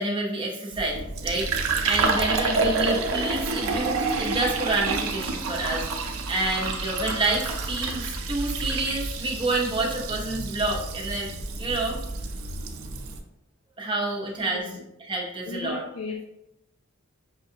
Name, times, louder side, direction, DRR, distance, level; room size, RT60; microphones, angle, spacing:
voice 1, 0.0-11.3 11.6-12.0 13.8-14.7 15.1-15.8, right 2 dB, 25° right, -3 dB, 0.8 m, -28 dB
Fill (with liquid), 0.7-13.2, right 3 dB, 85° right, 0.5 m, -28 dB
voice 2, 14.5-14.9 15.5-16.2, left 3 dB, 80° left, 2 dB, 0.4 m, -35 dB
5.7 x 2.4 x 2.8 m, 0.84 s
head